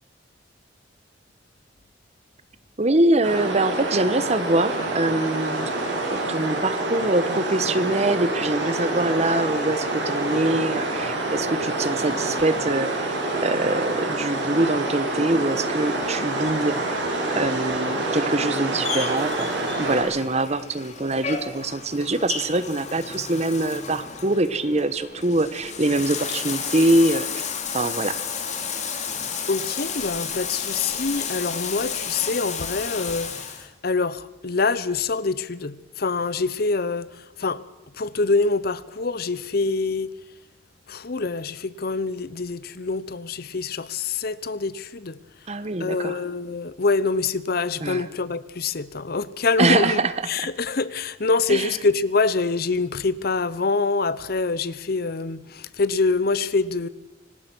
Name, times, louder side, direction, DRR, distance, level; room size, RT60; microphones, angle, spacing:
voice 1, 2.8-5.7 6.1-17.1 17.3-27.4 27.7-28.2 45.5-46.2 47.8-48.0 49.6-50.1 51.5-51.7, right 2 dB, 35° right, 1.1 m, -24 dB
sound 1, 3.2-20.0, right 2 dB, 80° right, 7.4 m, -27 dB
Bathtub (filling or washing), 18.8-33.6, left 6 dB, 40° left, 2.5 m, -32 dB
voice 2, 29.5-37.6 38.0-40.1 40.9-45.2 45.8-56.9, left 3 dB, 55° left, 0.8 m, -25 dB
25.0 x 19.0 x 6.2 m
head